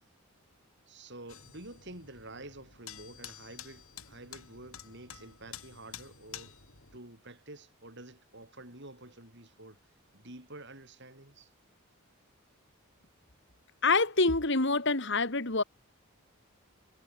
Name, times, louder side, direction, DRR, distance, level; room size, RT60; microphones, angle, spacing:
voice 1, 0.9-6.5 6.9-9.8 10.1-11.5, right 2 dB, 55° right, 7.6 m, -49 dB
sound 1, 1.3-7.0, left 9 dB, 75° left, 5.4 m, -49 dB
voice 2, 13.8-15.6, left 3 dB, 55° left, 2.8 m, -26 dB
head